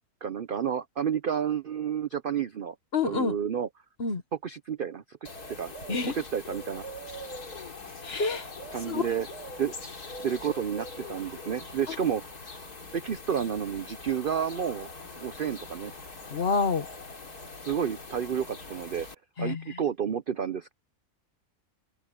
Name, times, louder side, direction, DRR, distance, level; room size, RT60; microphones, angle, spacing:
voice 1, 0.2-2.7 3.0-3.7 4.4-5.7 6.1-6.8 8.7-9.3 9.6-9.7 10.2-12.2 12.9-14.9 15.2-15.9 17.7-19.1 19.4-20.7, right 8 dB, 55° right, 0.6 m, -30 dB
voice 2, 2.9-3.4 4.0-4.2 5.9-6.1 8.0-8.5 8.9-9.1 16.3-16.9 19.4-19.8, left 4 dB, 45° left, 1.3 m, -28 dB
sound 1, 5.3-19.2, left 2 dB, 75° left, 3.7 m, -42 dB
open air
omnidirectional pair, 1.6 m